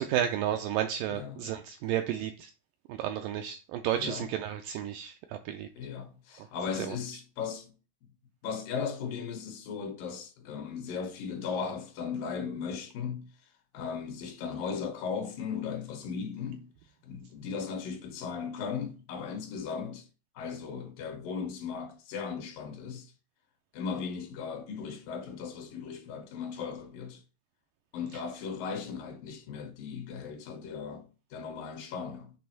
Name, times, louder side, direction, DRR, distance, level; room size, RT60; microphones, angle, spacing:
voice 1, 0.0-2.5 2.9-5.7 6.4-6.5 6.8-7.0, right 10 dB, 85° right, 1.9 m, -32 dB
voice 2, 1.1-1.5 4.0-4.3 5.8-7.7 8.4-13.3 13.7-16.7 17.0-20.1 20.4-23.1 23.7-27.2 27.9-32.3, left 6 dB, 70° left, 2.6 m, -37 dB
7.4 x 3.4 x 4.5 m
omnidirectional pair, 4.3 m